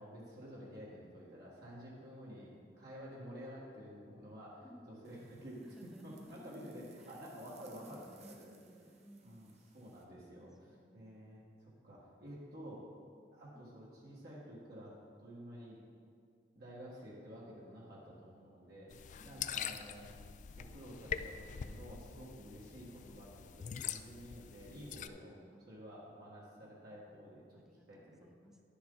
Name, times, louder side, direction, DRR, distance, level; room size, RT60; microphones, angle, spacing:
voice 1, 0.0-8.5 9.2-12.9 13.3-15.8 16.5-18.9 19.2-20.1 20.5-25.4 25.7-27.6 27.9-28.3, equal, 65° right, -6 dB, 1.6 m, -51 dB
voice 2, 4.6-4.9 5.6-7.2 7.8-9.7 10.7-11.4 13.1-13.3 13.5-13.6 19.2-19.5 23.0-23.5 25.5-25.7 26.9-28.6, equal, 5° right, 2 dB, 0.6 m, -59 dB
sound 1, 5.0-10.0, right 5 dB, 40° right, 0.9 m, -65 dB
sound 2, 18.9-25.1, left 8 dB, 45° left, 0.3 m, -44 dB
10.5 x 7.0 x 3.9 m, 2.2 s
head